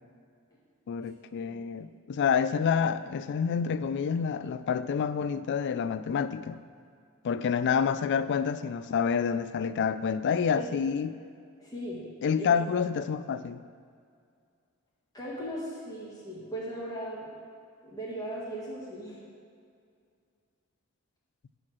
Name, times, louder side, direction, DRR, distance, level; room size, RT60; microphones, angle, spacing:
voice 1, 0.9-6.6 7.2-11.1 12.2-13.6, left 6 dB, 55° left, 14 dB, 0.3 m, -28 dB
voice 2, 11.6-12.1 12.4-12.5 15.1-17.3 17.8-19.3, equal, 20° left, -6 dB, 1.9 m, -38 dB
8.6 x 4.4 x 6.1 m, 2.3 s
head